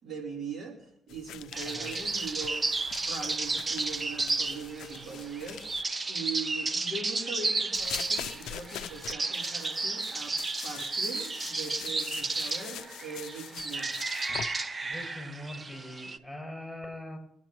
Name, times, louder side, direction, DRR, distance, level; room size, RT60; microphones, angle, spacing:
voice 1, 0.0-10.4 10.6-14.1, right 4 dB, 50° right, -1 dB, 3.5 m, -41 dB
sound 1, 1.1-5.8 7.7-14.5, left 12 dB, 85° left, 0.5 m, -44 dB
sound 2, 1.5-16.2, right 3 dB, 30° right, 0.8 m, -33 dB
voice 2, 14.8-17.2, left 1 dB, ahead, 1 dB, 6.7 m, -42 dB
24.0 x 9.9 x 3.0 m, 0.77 s
cardioid pair, 90°, 0 cm